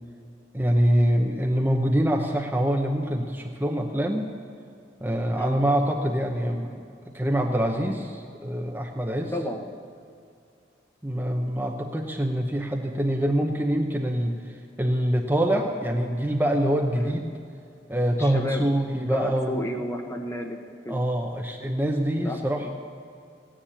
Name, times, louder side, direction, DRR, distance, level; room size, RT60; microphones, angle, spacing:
voice 1, 0.5-4.3 5.0-6.8 7.1-9.3 11.0-17.4 17.9-19.7 20.9-22.7, equal, 10° right, 1 dB, 0.8 m, -25 dB
voice 2, 9.3-9.8 17.0-17.1 18.2-18.6 19.1-20.6 20.8-21.0 22.2-22.4 22.6-22.7, equal, 15° left, 3 dB, 1.0 m, -32 dB
16.5 x 10.0 x 7.1 m, 2.5 s
head